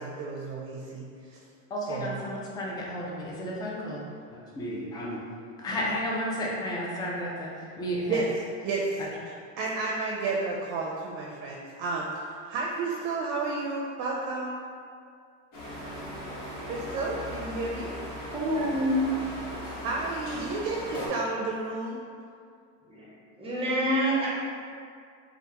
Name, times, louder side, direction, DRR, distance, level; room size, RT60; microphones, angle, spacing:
voice 1, 0.0-1.4 1.9-2.2 8.1-8.2 8.6-9.0 9.6-14.5 16.6-17.9 19.8-22.0, right 3 dB, 70° right, -2 dB, 0.5 m, -32 dB
voice 2, 1.7-4.0 4.3-5.2 5.6-7.5 7.8-8.2, equal, 10° left, -4 dB, 0.3 m, -32 dB
sound 1, 15.5-21.1, equal, 60° left, 1.2 m, -38 dB
voice 3, 18.3-19.2 22.9-23.1 23.4-24.3, equal, 15° right, -6 dB, 0.7 m, -26 dB
3.3 x 2.4 x 2.9 m, 2.3 s
supercardioid pair, 130°, 38 cm